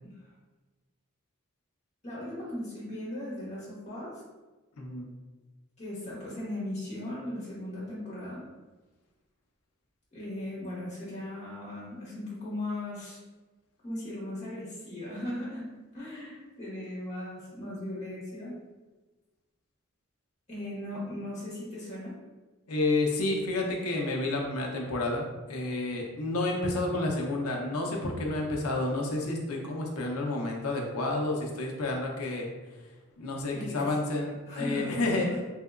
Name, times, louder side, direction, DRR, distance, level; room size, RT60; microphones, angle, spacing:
voice 1, 2.0-4.2 5.8-8.4 10.1-13.2 13.8-18.6 20.5-22.1 33.5-33.9 34.5-35.4, left 1 dB, 30° left, -8 dB, 1.3 m, -38 dB
voice 2, 4.8-5.1 22.7-32.5 32.8-32.9 33.2-35.3, left 2 dB, 90° left, 0 dB, 0.6 m, -30 dB
3.4 x 2.8 x 2.4 m, 1.2 s
head